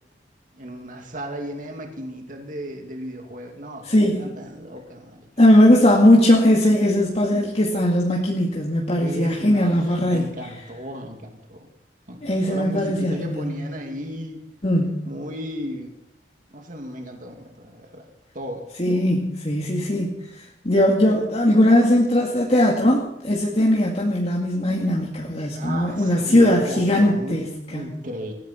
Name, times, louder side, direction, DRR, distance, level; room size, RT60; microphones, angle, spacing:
voice 1, 0.6-3.9 4.1-5.3 9.0-11.7 12.1-14.4 15.0-15.9 16.5-18.0 18.3-18.6 18.9-19.1 25.6-28.3, equal, 50° right, 3 dB, 2.4 m, -35 dB
voice 2, 3.9-4.2 5.4-10.3 12.2-13.5 14.6-15.1 18.8-27.9, left 1 dB, 35° left, -2 dB, 2.2 m, -19 dB
20.0 x 15.5 x 4.4 m, 0.84 s
head